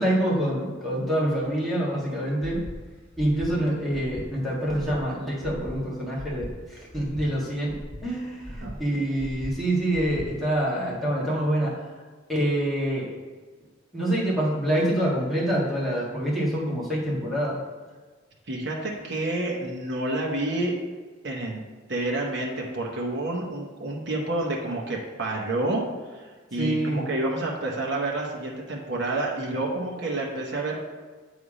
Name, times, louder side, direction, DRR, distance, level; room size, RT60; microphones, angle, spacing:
voice 1, 0.0-2.6 3.2-11.7 12.3-13.1 13.9-17.6 26.6-27.0, right 1 dB, ahead, -8 dB, 1.7 m, -26 dB
Breathing, 2.4-2.8 3.1-3.5 3.9-4.2 4.6-5.0 5.4-5.7 6.1-6.5 6.9-7.2 7.6-8.0 8.4-8.8 9.1-9.5 9.9-10.3, equal, 25° right, 2.0 m, -39 dB
voice 2, 18.5-20.7 21.2-21.6 21.9-25.8 26.1-26.2 26.5-30.8, right 2 dB, 60° right, -2 dB, 1.0 m, -29 dB
8.2 x 3.5 x 4.9 m, 1.4 s
head